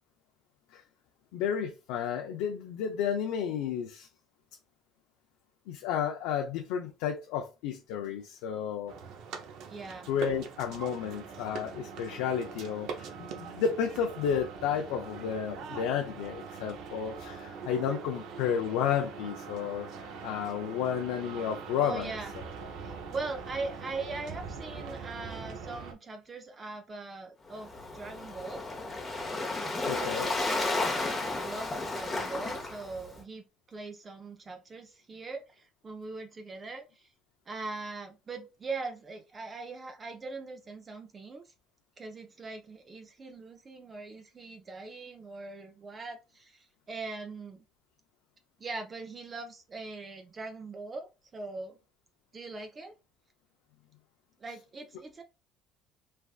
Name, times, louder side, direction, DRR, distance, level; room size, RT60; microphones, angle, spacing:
voice 1, 1.3-4.1 5.7-8.9 10.1-19.9 20.2-22.4 29.8-30.3 54.5-54.6, left 8 dB, 85° left, 0.4 m, -32 dB
sound 1, 8.9-25.9, right 5 dB, 70° right, 0.6 m, -42 dB
voice 2, 9.7-10.1 21.8-22.3 22.8-28.6 29.9-37.1 37.5-41.5 42.0-47.6 48.6-51.8 52.3-52.9 54.4-55.2, right 3 dB, 25° right, 0.5 m, -41 dB
Waves surf, 27.5-33.2, left 2 dB, 20° left, 0.8 m, -33 dB
3.3 x 2.4 x 2.4 m
cardioid pair, 120°, 0 cm